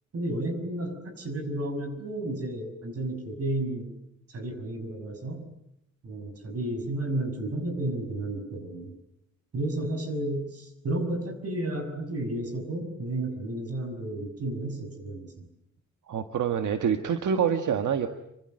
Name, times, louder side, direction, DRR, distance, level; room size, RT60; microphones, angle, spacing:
voice 1, 0.1-3.9 4.3-5.4 6.0-8.9 9.5-15.5, right 1 dB, 55° right, 8 dB, 6.2 m, -32 dB
voice 2, 16.1-18.1, right 7 dB, 80° right, 7 dB, 1.7 m, -26 dB
27.5 x 25.0 x 7.9 m, 0.80 s
wide cardioid pair, 160°, 30 cm